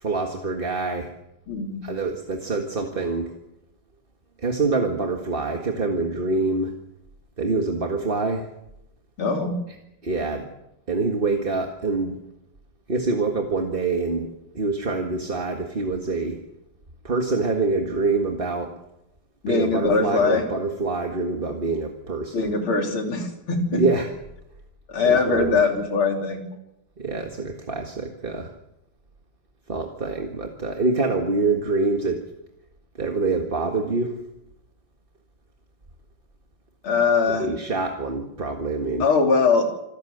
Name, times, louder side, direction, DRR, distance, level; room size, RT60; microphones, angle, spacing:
voice 1, 0.0-1.1 1.8-3.3 4.4-6.7 7.4-8.5 10.0-10.5 10.9-12.2 12.9-14.3 14.5-16.4 17.0-18.7 19.5-22.5 23.7-24.1 25.0-25.6 27.0-28.5 29.7-32.2 32.9-34.1 37.3-39.1, right 3 dB, 25° right, 3 dB, 1.8 m, -25 dB
voice 2, 1.5-1.8 9.2-9.6 19.4-20.4 22.3-23.8 24.9-26.4 36.8-37.5 39.0-39.6, left 4 dB, 85° left, 3 dB, 4.0 m, -21 dB
26.0 x 14.0 x 8.0 m, 0.90 s
omnidirectional pair, 2.3 m